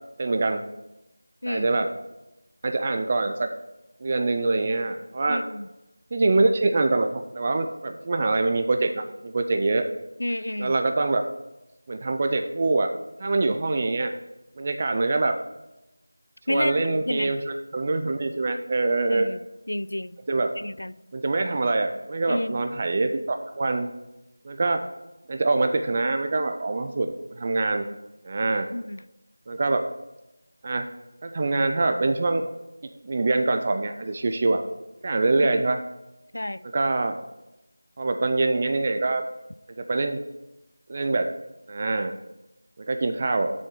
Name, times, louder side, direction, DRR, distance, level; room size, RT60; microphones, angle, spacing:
voice 1, 0.2-0.6 1.5-1.9 2.6-3.5 4.0-5.4 6.1-9.8 10.6-11.2 11.9-12.9 13.2-14.1 14.6-15.4 16.5-19.3 20.3-20.5 21.1-23.9 24.4-24.8 25.3-27.1 27.4-27.9 28.2-28.7 29.5-29.8 30.6-30.9 31.2-32.4 33.0-34.6 35.0-35.8 36.7-37.2 38.0-39.2 39.9-40.2 40.9-41.3 41.7-42.1 42.8-43.5, right 3 dB, 15° right, 6 dB, 0.3 m, -24 dB
voice 2, 5.3-5.7 10.2-10.7 16.5-17.3 19.1-19.4 19.7-20.2 20.6-20.9 22.3-22.6 28.7-29.0 35.4-35.6 36.3-36.6, left 1 dB, 80° left, 17 dB, 0.4 m, -30 dB
8.3 x 6.5 x 4.5 m, 0.96 s
figure-of-eight pair, 180°, 0 cm